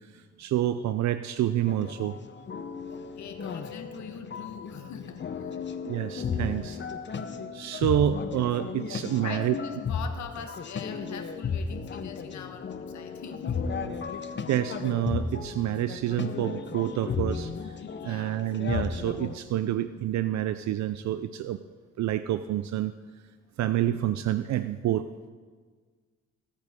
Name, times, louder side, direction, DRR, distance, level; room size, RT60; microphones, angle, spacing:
voice 1, 0.1-2.2 5.8-6.8 7.5-9.5 14.5-17.5 18.0-21.6 22.0-22.9 23.6-25.1, right 12 dB, 65° right, 12 dB, 0.5 m, -28 dB
sound 1, 1.6-19.3, left 5 dB, 35° left, 0.9 m, -35 dB
voice 2, 2.6-5.8 7.7-8.0 9.2-13.6 16.8-17.0 17.8-18.5, left 6 dB, 65° left, 7 dB, 1.4 m, -42 dB
18.5 x 8.6 x 3.7 m, 1.5 s
cardioid pair, 90°, 30 cm